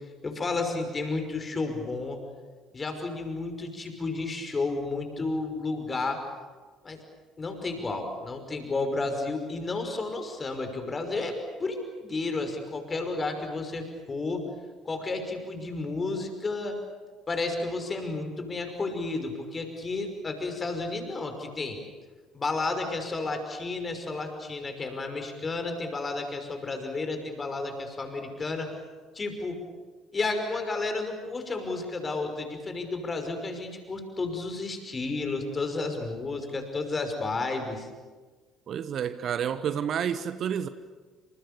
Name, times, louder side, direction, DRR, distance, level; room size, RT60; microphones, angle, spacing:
voice 1, 0.2-2.2 2.7-6.2 6.8-7.0 7.4-14.5 14.8-16.8 17.3-21.8 22.3-28.7 29.1-29.6 30.1-37.9, left 3 dB, 25° left, 5.8 m, -32 dB
voice 2, 38.7-40.7, right 8 dB, 45° right, 1.2 m, -29 dB
28.5 x 27.5 x 7.1 m
figure-of-eight pair, 55°, 0 cm